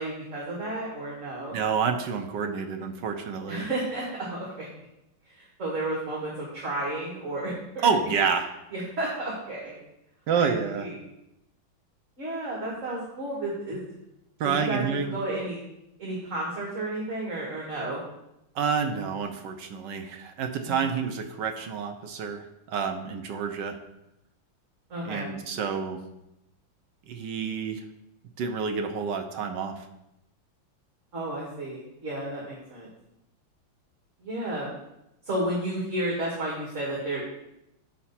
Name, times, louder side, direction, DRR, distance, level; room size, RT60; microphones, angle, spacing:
voice 1, 0.0-1.6 3.5-4.0 4.3-4.7 5.4-7.9 8.7-9.8 10.3-10.9 12.2-13.8 14.4-14.8 15.1-15.6 16.0-18.0 20.6-20.9 24.9-25.3 31.1-32.9 34.2-34.7 35.3-37.2, right 1 dB, 40° right, -5 dB, 2.3 m, -32 dB
voice 2, 1.5-3.6 7.8-8.5 10.3-10.9 14.4-15.1 18.5-23.8 25.0-26.0 27.1-27.8 28.4-29.8, right 6 dB, 70° right, 5 dB, 1.3 m, -28 dB
8.8 x 5.9 x 4.3 m, 0.88 s
omnidirectional pair, 2.3 m